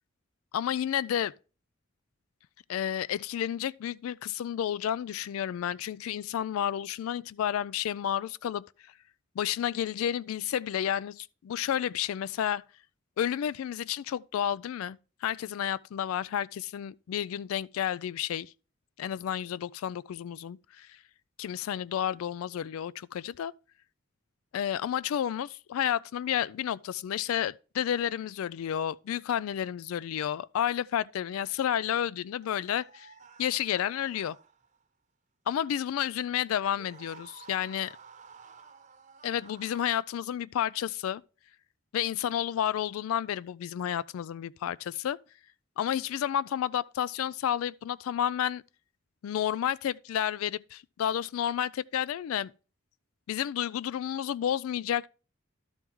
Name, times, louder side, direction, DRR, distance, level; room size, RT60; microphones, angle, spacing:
voice 1, 0.5-1.3 2.7-8.6 9.4-12.6 13.2-18.5 19.0-20.9 21.4-23.5 24.5-33.1 33.4-34.4 35.5-37.9 39.2-41.2 41.9-45.2 45.8-48.6 49.2-52.5 53.3-55.1, left 10 dB, 85° left, 0.3 m, -31 dB
sound 1, 32.4-34.8 36.7-39.9, right 6 dB, 35° right, 0.9 m, -53 dB
12.0 x 4.6 x 3.6 m
head